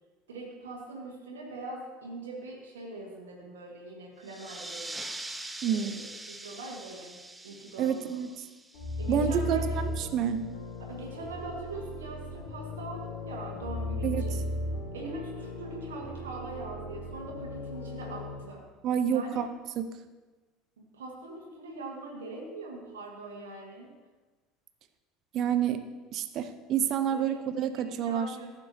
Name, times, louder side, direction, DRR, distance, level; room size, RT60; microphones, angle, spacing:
voice 1, 0.3-5.1 5.7-7.2 7.4-8.2 9.0-9.8 10.9-14.5 14.9-18.7 19.1-19.4 20.8-23.9 27.1-27.4 27.8-28.5, right 2 dB, 80° right, -1 dB, 1.4 m, -42 dB
sound 1, 4.2-9.4, right 2 dB, 10° right, 0.6 m, -43 dB
voice 2, 5.6-6.0 7.8-8.3 9.1-9.6 10.0-10.4 14.0-14.2 18.8-19.5 19.8-19.9 25.3-25.8 26.1-28.3, right 8 dB, 50° right, 10 dB, 0.7 m, -28 dB
sound 2, 8.7-18.3, left 1 dB, 65° left, 2.2 m, -36 dB
14.5 x 7.0 x 2.8 m, 1.3 s
hypercardioid pair, 70°, 0 cm